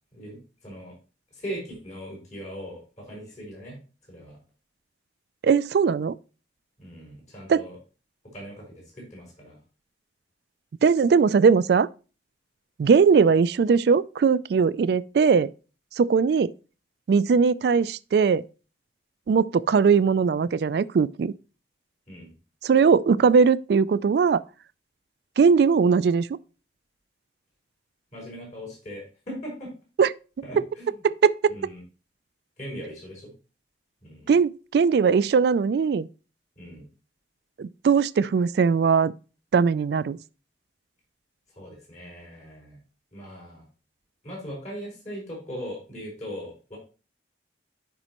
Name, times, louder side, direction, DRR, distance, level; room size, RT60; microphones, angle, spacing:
voice 1, 0.1-0.9 1.3-3.8 4.1-4.4 6.8-7.8 8.3-9.6 22.1-22.3 28.1-29.7 30.4-31.0 31.5-31.8 32.6-33.3 34.0-34.3 36.6-36.8 41.6-42.8 43.1-43.6 44.2-46.8, equal, 40° left, 4.6 m, -39 dB
voice 2, 5.4-6.2 7.5-7.6 10.8-11.9 12.8-15.5 16.0-16.5 17.1-18.4 19.3-21.3 22.6-24.4 25.4-26.4 30.0-30.1 31.0-31.5 34.3-36.1 37.6-39.1 39.5-40.2, right 5 dB, 65° right, 0.3 m, -20 dB
12.0 x 5.4 x 3.0 m
head